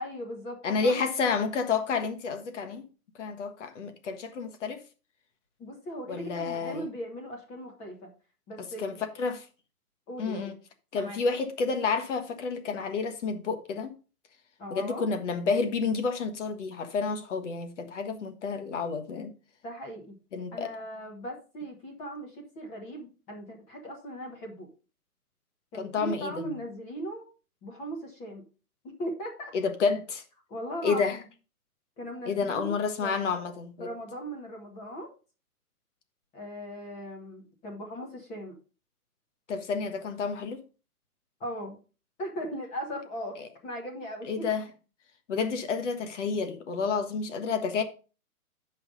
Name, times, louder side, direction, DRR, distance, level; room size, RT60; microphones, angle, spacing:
voice 1, 0.0-1.1 5.6-8.1 8.5-9.0 10.1-10.5 10.9-11.2 14.6-15.0 19.6-20.2 20.5-24.7 25.7-27.2 27.6-28.4 28.8-29.5 30.5-31.3 32.0-32.7 33.0-33.5 33.8-35.1 36.3-38.5 41.4-41.8 42.2-43.4 43.6-44.4, equal, 15° left, 1.3 m, -38 dB
voice 2, 0.6-2.8 3.2-4.8 6.1-6.8 8.8-9.5 10.2-10.5 10.9-13.9 14.7-19.3 20.3-20.7 25.7-26.4 29.5-30.2 30.8-31.2 32.3-33.9 39.5-40.6 44.3-44.6 45.3-47.8, left 5 dB, 50° left, 1.5 m, -30 dB
7.9 x 5.7 x 5.1 m
hypercardioid pair, 165°, 45 cm